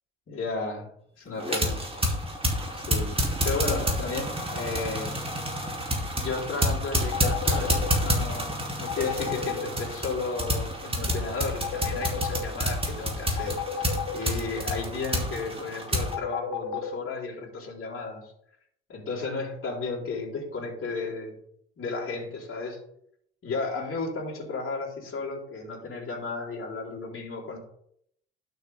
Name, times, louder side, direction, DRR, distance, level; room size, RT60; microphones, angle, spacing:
voice 1, 0.3-0.9 1.2-1.8 2.7-5.2 6.1-18.3 18.9-21.4 21.8-22.8 23.4-27.6, left 3 dB, 40° left, -4 dB, 3.9 m, -34 dB
sound 1, 1.4-16.1, equal, 15° right, 3.0 m, -29 dB
sound 2, 7.1-7.9 8.9-9.6 11.6-12.4 13.4-14.1 16.1-16.9, left 9 dB, 65° left, 1.6 m, -31 dB
11.5 x 6.3 x 3.5 m, 0.70 s
hypercardioid pair, 55°, 34 cm